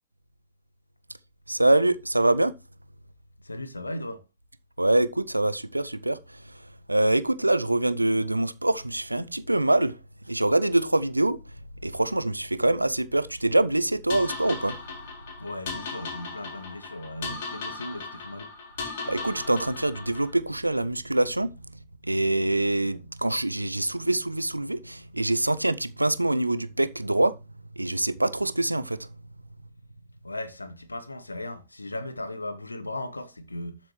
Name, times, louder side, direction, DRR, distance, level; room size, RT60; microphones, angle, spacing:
voice 1, 1.5-2.5 4.8-6.6 6.9-10.0 10.3-11.4 11.8-14.8 18.8-21.5 22.0-27.3 27.8-29.0, right 1 dB, 85° right, 0.6 m, -24 dB
voice 2, 3.4-4.2 15.4-18.5 30.2-33.8, left 1 dB, 80° left, 1.1 m, -37 dB
sound 1, 14.1-20.3, left 4 dB, 60° left, 4.0 m, -37 dB
12.5 x 7.4 x 3.2 m
figure-of-eight pair, 90°, 0 cm